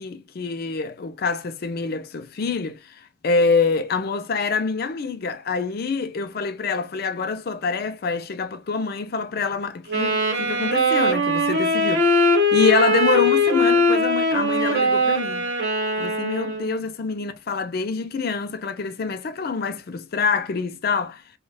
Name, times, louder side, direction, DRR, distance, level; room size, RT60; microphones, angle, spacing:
voice 1, 0.0-15.5 16.0-21.2, left 4 dB, 55° left, 0.4 m, -26 dB
Wind instrument woodwind instrument, 9.9-16.8, left 1 dB, 60° right, 1.1 m, -21 dB
3.3 x 2.3 x 2.2 m
head